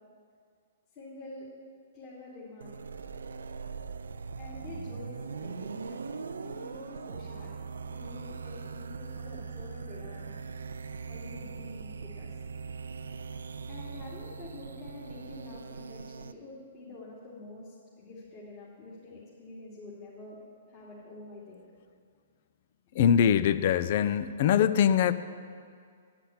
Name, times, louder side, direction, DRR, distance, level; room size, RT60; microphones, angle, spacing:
voice 1, 0.9-1.5 1.9-2.7 4.4-7.5 7.8-10.3 11.1-12.3 13.6-20.4 20.7-21.6, left 2 dB, 35° left, -9 dB, 2.8 m, -47 dB
sound 1, 2.6-16.3, right 5 dB, 75° right, 0.4 m, -41 dB
voice 2, 22.9-25.1, left 9 dB, 50° left, 13 dB, 0.5 m, -23 dB
10.5 x 5.9 x 8.7 m, 2.2 s
hypercardioid pair, 125°, 0 cm